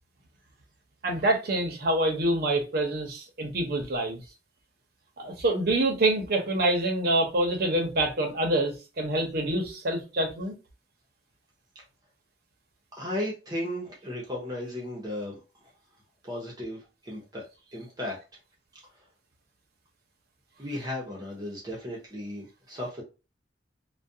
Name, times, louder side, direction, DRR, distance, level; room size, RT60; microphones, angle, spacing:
voice 1, 1.0-4.2 5.2-10.5, right 1 dB, 60° right, 0.7 m, -26 dB
voice 2, 12.9-15.4 16.2-17.4 17.7-18.2 20.6-23.0, left 1 dB, 20° right, 0.7 m, -35 dB
2.4 x 2.2 x 2.6 m
head